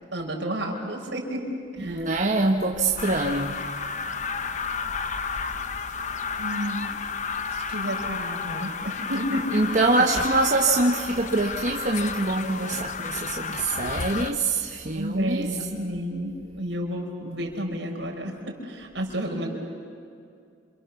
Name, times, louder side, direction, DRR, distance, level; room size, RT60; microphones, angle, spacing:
voice 1, 0.1-2.1 6.4-6.8 7.5-9.7 14.9-19.5, equal, 80° right, -1 dB, 4.7 m, -31 dB
voice 2, 1.8-3.6 9.5-15.5, right 2 dB, 40° right, 1 dB, 1.3 m, -24 dB
sound 1, 3.0-14.3, left 5 dB, 40° left, 1.0 m, -32 dB
27.5 x 27.0 x 7.0 m, 2.4 s
head